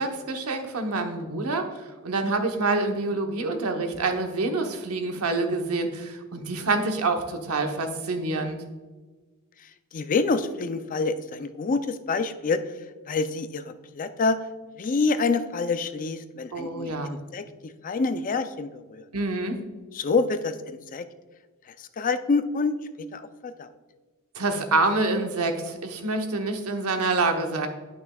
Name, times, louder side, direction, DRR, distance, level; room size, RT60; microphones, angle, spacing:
voice 1, 0.0-8.6 16.5-17.1 19.1-19.6 24.3-27.7, right 3 dB, 85° right, 5 dB, 0.9 m, -27 dB
voice 2, 9.9-12.6 13.1-14.4 14.8-19.0 19.9-21.1 21.8-23.7, left 4 dB, 40° left, 10 dB, 0.4 m, -27 dB
10.5 x 5.9 x 2.3 m, 1.3 s
head